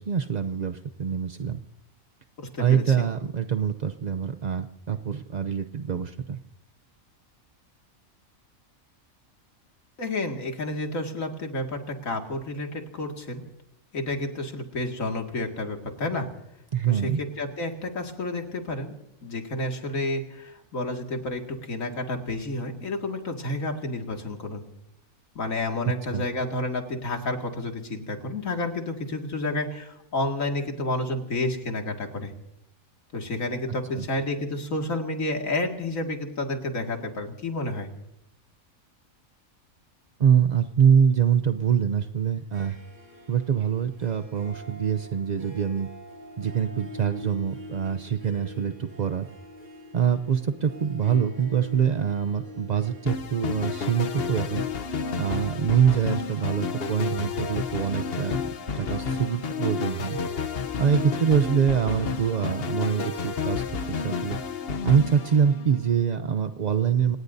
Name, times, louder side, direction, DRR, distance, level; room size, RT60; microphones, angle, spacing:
voice 1, 0.0-1.6 2.6-6.4 16.7-17.2 26.1-26.3 33.9-34.1 40.2-42.8 43.3-45.9 46.4-49.3 49.9-54.6 55.2-58.4 58.8-60.2 60.8-64.4 64.8-67.2, right 8 dB, 50° right, 9 dB, 0.5 m, -24 dB
voice 2, 2.4-2.9 10.0-13.4 13.9-16.3 16.8-18.9 19.2-24.6 25.4-32.3 33.1-37.9, left 2 dB, 70° left, 2 dB, 2.5 m, -30 dB
Harp, 42.3-57.7, equal, 80° right, 8.2 m, -45 dB
sound 1, 53.1-66.0, left 5 dB, 50° left, 1.0 m, -31 dB
27.5 x 19.0 x 2.7 m, 0.83 s
omnidirectional pair, 1.4 m